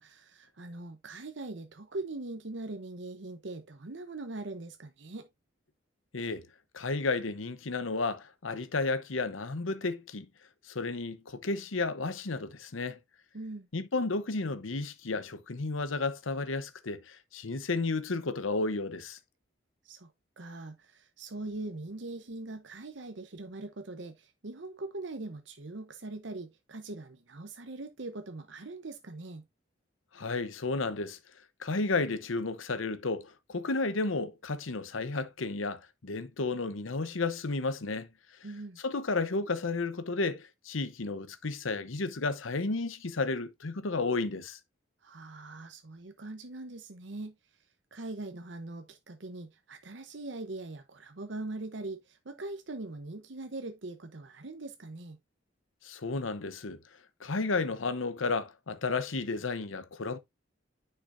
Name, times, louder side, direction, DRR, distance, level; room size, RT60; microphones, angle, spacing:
voice 1, 0.0-5.3 13.3-13.7 19.8-29.4 38.4-38.8 45.0-47.4 47.9-55.2, right 2 dB, 65° right, 0.9 m, -41 dB
voice 2, 6.1-6.5 6.7-10.3 10.6-13.0 13.7-19.2 30.1-31.2 31.6-38.1 38.8-44.6 55.8-56.8 57.2-60.2, left 3 dB, 90° left, 0.9 m, -32 dB
10.0 x 5.7 x 2.6 m
head